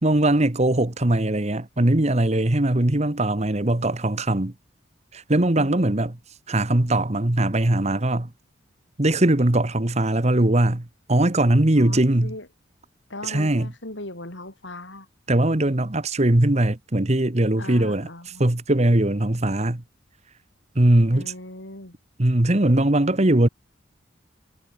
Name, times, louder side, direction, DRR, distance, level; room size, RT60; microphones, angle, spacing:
voice 1, 0.0-4.5 5.1-6.1 6.5-8.3 9.0-12.3 13.2-13.7 15.3-19.8 20.7-21.3 22.2-23.5, right 1 dB, 35° right, 1.3 m, -20 dB
voice 2, 11.8-12.5 13.1-15.1 17.6-18.4 21.1-22.0, left 1 dB, 70° left, 6.8 m, -38 dB
head